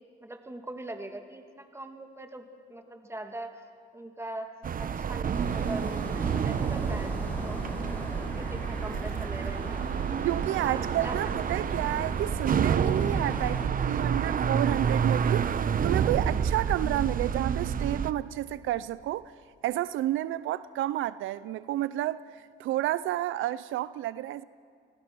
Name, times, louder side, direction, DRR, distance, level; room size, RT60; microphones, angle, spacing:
voice 1, 0.2-3.5 3.9-4.5 4.8-7.7 8.4-9.9 10.6-11.3, right 1 dB, 15° right, 2.5 m, -41 dB
sound 1, 4.6-18.1, right 7 dB, 45° right, 0.9 m, -29 dB
sound 2, 5.3-13.6, equal, 10° left, 7.1 m, -39 dB
voice 2, 10.2-15.5 15.8-19.3 19.6-24.4, right 14 dB, 80° right, 0.5 m, -30 dB
30.0 x 19.5 x 6.2 m
cardioid pair, 90°, 20 cm